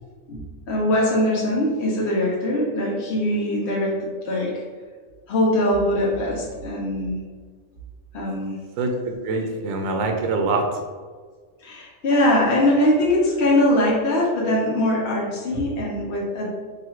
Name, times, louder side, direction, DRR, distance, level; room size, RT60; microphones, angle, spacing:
voice 1, 0.3-4.6 5.3-7.2 8.1-8.5 11.6-16.5, left 1 dB, 60° left, -5 dB, 1.2 m, -22 dB
voice 2, 8.8-10.8, right 3 dB, 85° right, 3 dB, 1.0 m, -24 dB
3.9 x 2.7 x 4.5 m, 1.5 s
omnidirectional pair, 1.4 m